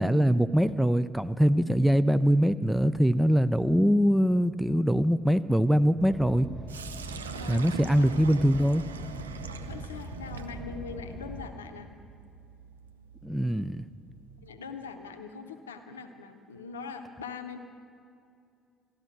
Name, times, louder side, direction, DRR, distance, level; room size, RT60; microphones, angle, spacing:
voice 1, 0.0-6.5 7.5-8.9 13.2-13.8, equal, 5° right, 12 dB, 0.5 m, -23 dB
Car, 6.0-11.5, right 1 dB, 60° right, 2.5 m, -41 dB
Sink (filling or washing), 6.7-14.6, right 5 dB, 80° right, 0.4 m, -44 dB
voice 2, 7.4-8.4 9.7-11.9 14.4-17.6, left 5 dB, 80° left, 7 dB, 0.7 m, -42 dB
14.5 x 12.0 x 6.1 m, 2.4 s
figure-of-eight pair, 50°, 0 cm